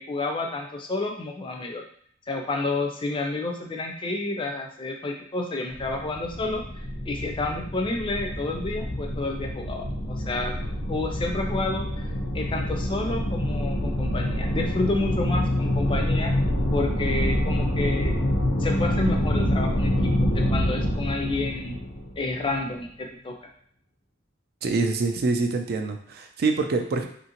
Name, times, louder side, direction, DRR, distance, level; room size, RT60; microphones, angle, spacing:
voice 1, 0.0-1.8 2.3-10.5 10.9-12.1 12.3-16.3 16.7-18.1 18.6-21.8 22.2-23.3, left 2 dB, 25° left, 2 dB, 0.4 m, -30 dB
sound 1, 5.7-22.7, left 1 dB, 70° left, 0.6 m, -26 dB
voice 2, 24.6-27.1, right 3 dB, 55° right, 5 dB, 0.4 m, -25 dB
2.8 x 2.6 x 2.8 m, 0.62 s
head